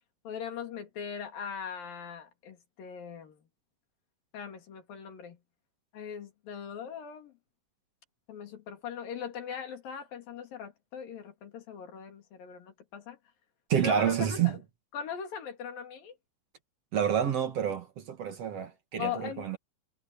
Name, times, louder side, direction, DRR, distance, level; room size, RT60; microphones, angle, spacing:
voice 1, 0.2-3.4 4.3-5.4 5.9-7.3 8.3-13.2 13.8-14.6 14.9-16.2 19.0-19.5, left 7 dB, 90° left, 4.5 m, -40 dB
voice 2, 13.7-14.6 16.9-19.6, right 8 dB, 55° right, 2.2 m, -28 dB
omnidirectional pair, 3.9 m